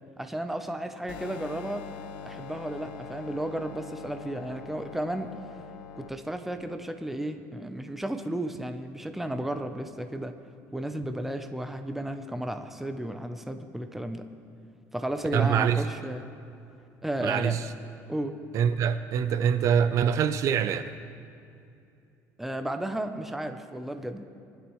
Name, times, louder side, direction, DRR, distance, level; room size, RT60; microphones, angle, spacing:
voice 1, 0.2-1.9 2.2-5.3 6.0-10.3 10.7-14.3 14.9-16.3 17.0-17.6 18.1-18.3 22.4-24.2, right 1 dB, 5° right, 7 dB, 0.6 m, -33 dB
sound 1, 1.1-6.1, left 6 dB, 90° left, 0.8 m, -43 dB
voice 2, 15.3-15.8 17.2-17.7 18.5-21.0, right 8 dB, 50° right, 12 dB, 0.5 m, -24 dB
22.0 x 11.5 x 3.1 m, 2.6 s
cardioid pair, 150°, 7 cm